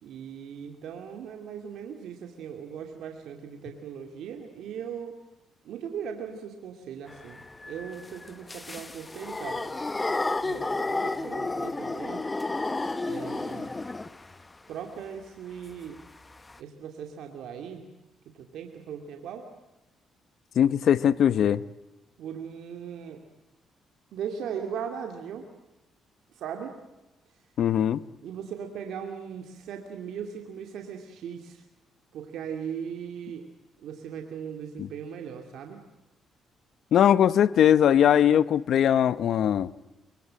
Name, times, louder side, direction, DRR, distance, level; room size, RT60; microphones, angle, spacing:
voice 1, 0.0-5.2 5.6-9.7 10.4-12.3 13.0-13.7 14.7-16.0 16.6-17.9 18.2-19.5 22.2-23.2 24.1-25.5 26.3-26.8 27.3-27.5 28.2-31.6 32.1-33.5 33.8-35.8, right 7 dB, 80° right, 2.5 m, -38 dB
sound 1, 7.1-14.4 16.0-16.1 16.3-16.6, left 2 dB, 20° left, 1.0 m, -32 dB
voice 2, 20.6-21.6 27.6-28.0 34.8-34.9 36.9-39.7, left 9 dB, 70° left, 0.8 m, -20 dB
24.0 x 24.0 x 7.7 m
cardioid pair, 90°, 0 cm